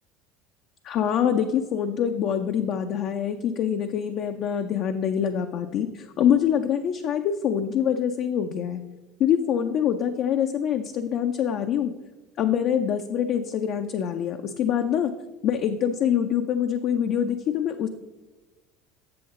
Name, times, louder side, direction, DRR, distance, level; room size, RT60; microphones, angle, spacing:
voice 1, 0.8-8.8 9.2-11.9 12.4-15.1 15.4-17.9, left 9 dB, 55° left, 5 dB, 0.5 m, -25 dB
7.7 x 7.6 x 3.7 m, 1.1 s
hypercardioid pair, 70°, 0 cm